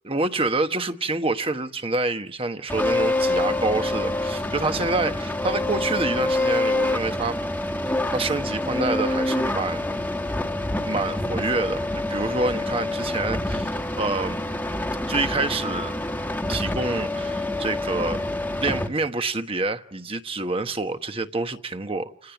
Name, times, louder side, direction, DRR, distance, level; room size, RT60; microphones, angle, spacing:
voice 1, 0.0-7.4 7.8-9.9 10.8-14.4 15.1-15.9 16.5-18.2 18.6-22.3, right 3 dB, 30° right, 1.2 m, -27 dB
sound 1, 2.7-18.9, left 1 dB, 10° left, 1.5 m, -26 dB
29.5 x 17.5 x 9.3 m
head